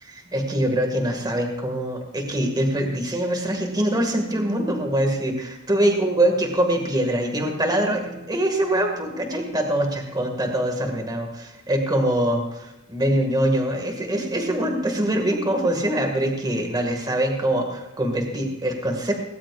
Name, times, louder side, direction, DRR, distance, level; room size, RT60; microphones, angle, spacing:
voice 1, 0.1-19.1, right 1 dB, 20° right, 3 dB, 2.3 m, -23 dB
18.5 x 17.0 x 2.6 m, 0.97 s
head